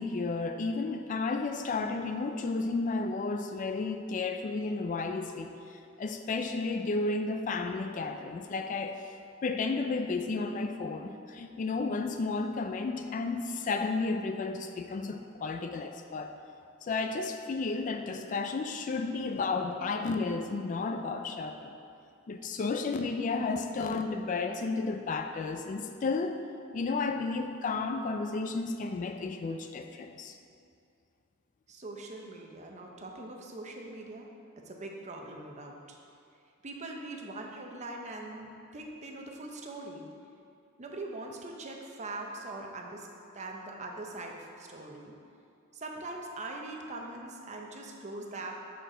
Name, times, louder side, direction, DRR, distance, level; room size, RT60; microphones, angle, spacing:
voice 1, 0.0-5.5 6.0-9.0 9.4-16.3 16.8-21.7 22.3-26.4 26.7-30.4, left 3 dB, 40° left, 6 dB, 0.3 m, -32 dB
voice 2, 31.7-34.3 34.6-36.0 36.6-40.1 40.8-43.1 43.3-45.1 45.7-48.6, right 2 dB, 35° right, 1 dB, 0.7 m, -42 dB
6.5 x 6.5 x 3.8 m, 2.5 s
head